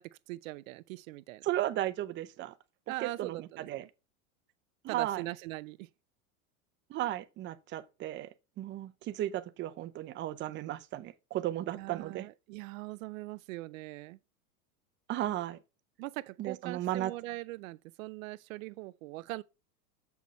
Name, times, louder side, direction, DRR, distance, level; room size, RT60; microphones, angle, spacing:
voice 1, 0.0-1.5 2.9-3.9 4.9-5.9 11.7-14.2 16.0-19.4, right 19 dB, 65° right, 0.5 m, -41 dB
voice 2, 1.4-2.6 3.0-3.8 4.8-5.2 6.9-8.3 8.6-12.3 15.1-15.6 16.4-17.1, right 13 dB, 25° right, 0.6 m, -35 dB
7.0 x 6.3 x 4.2 m
supercardioid pair, 130°, 43 cm